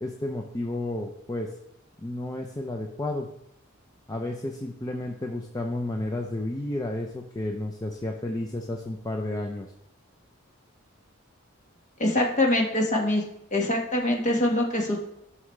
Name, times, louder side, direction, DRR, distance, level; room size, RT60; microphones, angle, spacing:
voice 1, 0.0-1.5 2.0-3.3 4.1-9.7, left 1 dB, 15° left, 1 dB, 0.6 m, -32 dB
voice 2, 12.0-13.2 13.5-15.0, left 1 dB, 35° left, 0 dB, 1.6 m, -24 dB
13.0 x 6.2 x 3.3 m, 0.79 s
head